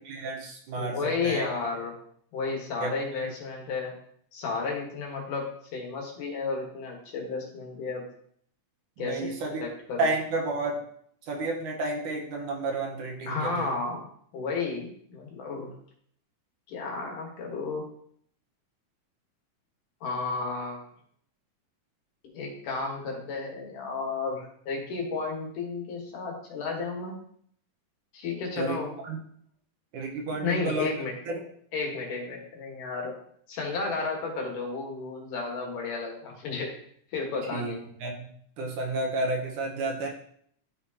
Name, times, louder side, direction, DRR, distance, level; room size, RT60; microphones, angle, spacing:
voice 1, 0.1-1.0 1.2-1.5 2.8-3.3 9.0-9.6 10.0-10.8 11.3-13.7 28.6-28.8 29.0-29.2 29.9-30.9 31.3-31.4 37.5-37.7 38.0-38.3 38.6-40.1, right 2 dB, 70° right, 0 dB, 2.6 m, -31 dB
voice 2, 0.8-2.0 2.3-4.0 4.3-8.1 9.0-9.4 9.6-10.1 13.3-14.1 14.3-15.7 16.7-17.9 20.0-20.9 22.2-27.1 28.1-29.0 30.3-31.2 31.7-33.2 33.5-36.8 37.1-37.8, left 4 dB, 75° left, 0 dB, 3.0 m, -32 dB
12.0 x 4.3 x 2.8 m, 0.64 s
omnidirectional pair, 3.8 m